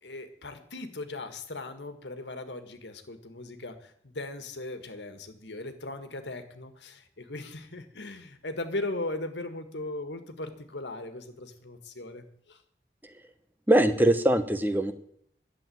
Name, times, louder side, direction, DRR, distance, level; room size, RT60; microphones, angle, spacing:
voice 1, 0.0-12.6, left 2 dB, 90° left, 8 dB, 1.8 m, -38 dB
voice 2, 13.7-14.9, right 1 dB, 10° right, 9 dB, 0.9 m, -22 dB
11.5 x 7.7 x 9.3 m, 0.68 s
head